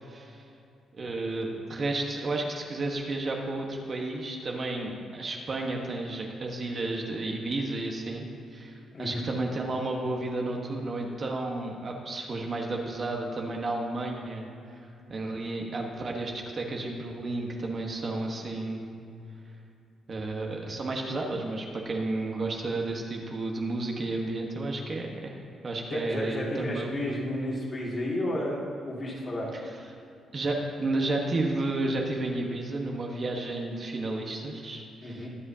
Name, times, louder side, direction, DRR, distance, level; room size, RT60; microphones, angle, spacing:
voice 1, 0.1-0.4 0.9-8.3 8.5-14.8 15.1-18.9 20.1-25.4 25.6-26.9 30.3-35.3, right 2 dB, 35° right, 0 dB, 1.3 m, -32 dB
voice 2, 25.9-29.5 35.0-35.3, left 1 dB, 35° left, -4 dB, 2.3 m, -32 dB
21.5 x 7.9 x 2.8 m, 2.6 s
cardioid pair, 135°, 0 cm